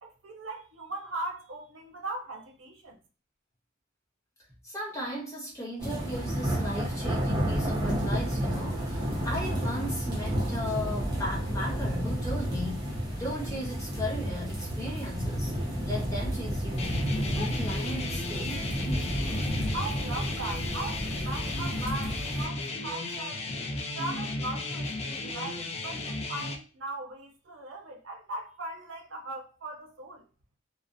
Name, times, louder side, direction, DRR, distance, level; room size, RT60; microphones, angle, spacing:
voice 1, 0.0-3.0 19.7-23.5 23.9-30.2, right 2 dB, 75° right, 0.6 m, -39 dB
voice 2, 4.6-15.5 15.9-17.0 17.3-19.3, left 1 dB, 15° left, 0.9 m, -37 dB
sound 1, 5.8-22.5, equal, 25° right, 0.8 m, -31 dB
sound 2, 16.8-26.6, left 2 dB, 30° left, 0.4 m, -34 dB
2.4 x 2.1 x 2.5 m
head